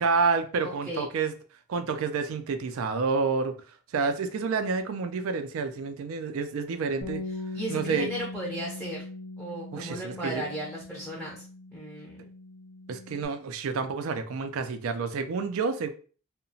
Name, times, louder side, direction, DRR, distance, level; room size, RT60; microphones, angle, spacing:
voice 1, 0.0-1.3 1.7-3.6 3.9-7.2 7.7-8.1 9.7-10.4 12.9-15.9, right 5 dB, 75° right, 0.4 m, -29 dB
voice 2, 0.6-1.1 7.5-9.0 9.4-11.4 11.7-12.2, equal, ahead, 0.5 m, -35 dB
Bass guitar, 7.0-13.3, left 2 dB, 80° left, 0.6 m, -40 dB
2.8 x 2.1 x 2.6 m
head